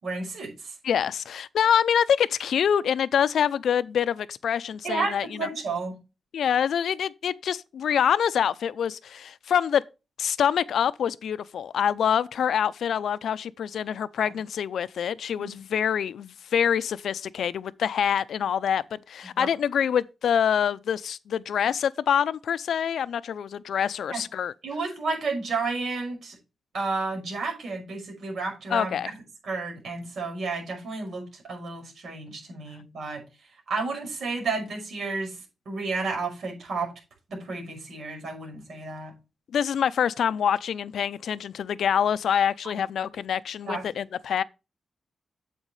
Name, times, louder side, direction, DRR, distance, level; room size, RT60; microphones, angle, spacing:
voice 1, 0.0-0.7 4.8-6.0 14.2-14.3 15.4-15.5 19.4-19.5 24.1-24.2 24.6-26.4 26.7-28.9 29.4-33.2 33.7-35.4 35.7-36.9 37.3-39.1 43.7-43.8, right 3 dB, 60° right, 5.6 m, -31 dB
voice 2, 0.8-5.5 6.3-9.8 10.2-24.5 28.7-29.1 39.5-44.4, left 8 dB, 75° left, 0.5 m, -25 dB
9.4 x 8.2 x 3.2 m
wide cardioid pair, 175°, 0 cm